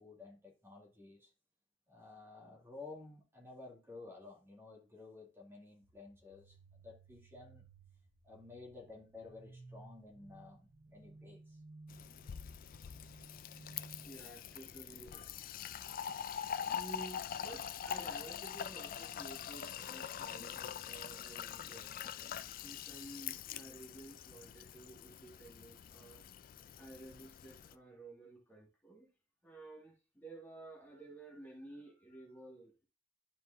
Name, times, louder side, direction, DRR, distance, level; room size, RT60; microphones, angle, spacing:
voice 1, 0.0-1.3 1.9-7.6 8.2-11.6, left 3 dB, 15° right, 2.2 m, -53 dB
sound 1, 5.8-17.4, right 2 dB, 90° right, 1.0 m, -58 dB
Fill (with liquid), 11.9-27.7, left 9 dB, 50° left, 0.3 m, -44 dB
voice 2, 14.0-15.6 16.7-26.2 26.8-29.1 29.4-32.8, right 2 dB, 10° left, 1.7 m, -53 dB
11.5 x 4.7 x 2.6 m
head